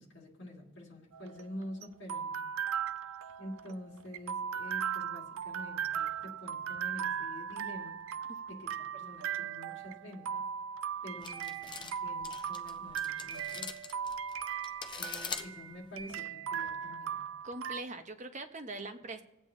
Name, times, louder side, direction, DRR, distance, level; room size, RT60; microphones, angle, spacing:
voice 1, 0.0-2.5 3.4-8.0 8.5-10.5 11.0-13.8 15.0-17.2, left 1 dB, 60° left, 1.9 m, -47 dB
sound 1, 1.1-17.8, right 8 dB, 90° right, 0.4 m, -38 dB
sound 2, 11.2-16.2, left 6 dB, 25° left, 0.6 m, -43 dB
voice 2, 17.4-19.2, right 2 dB, 35° right, 0.7 m, -42 dB
20.5 x 8.4 x 2.7 m
head